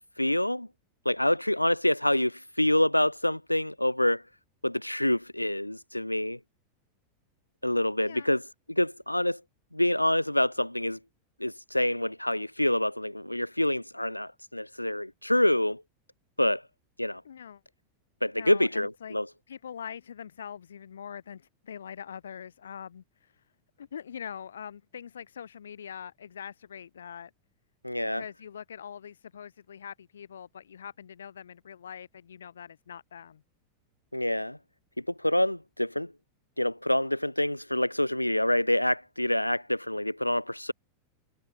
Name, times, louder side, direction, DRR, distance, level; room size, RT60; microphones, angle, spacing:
voice 1, 0.2-0.7 1.0-4.2 4.6-6.4 7.6-8.4 8.7-9.4 9.7-11.0 11.4-15.8 16.4-16.6 17.0-17.2 18.2-19.3 27.8-28.2 34.1-34.6 35.2-36.1 36.6-40.7, left 1 dB, 85° left, 0.9 m, -26 dB
voice 2, 17.2-17.6 18.4-19.2 19.5-23.4 23.8-27.3 28.0-33.4, left 8 dB, 65° left, 4.2 m, -43 dB
figure-of-eight pair, 90°, 0 cm